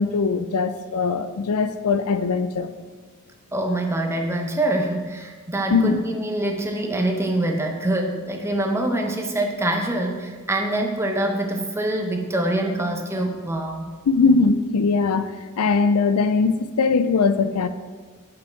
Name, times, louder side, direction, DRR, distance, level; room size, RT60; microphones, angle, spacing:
voice 1, 0.0-2.7 5.7-6.0 14.1-15.3 15.6-17.7, left 4 dB, 80° left, 11 dB, 0.5 m, -20 dB
voice 2, 3.5-13.9, right 1 dB, 10° right, 2 dB, 0.7 m, -25 dB
6.9 x 5.4 x 4.5 m, 1.5 s
head